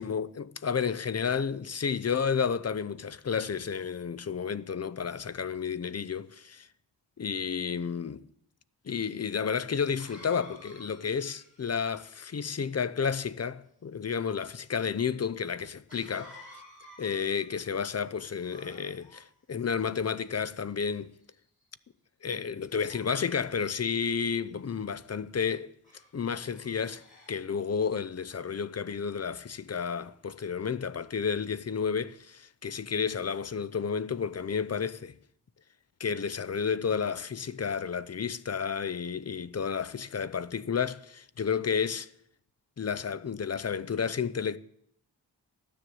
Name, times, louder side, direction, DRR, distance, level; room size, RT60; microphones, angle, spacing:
voice 1, 0.0-6.7 7.2-8.3 8.8-16.4 17.0-21.1 22.2-25.7 26.1-27.0 27.3-35.1 36.0-42.1 42.8-44.6, left 6 dB, 35° left, 0.6 m, -31 dB
Cough, 8.9-9.0 10.0-12.4 15.9-17.7 18.4-19.2 20.0-20.7 21.3-21.6 22.6-24.2 25.8-26.1 26.5-27.4, left 1 dB, 20° left, 7.9 m, -53 dB
13.5 x 10.0 x 7.8 m
wide cardioid pair, 110°, 43 cm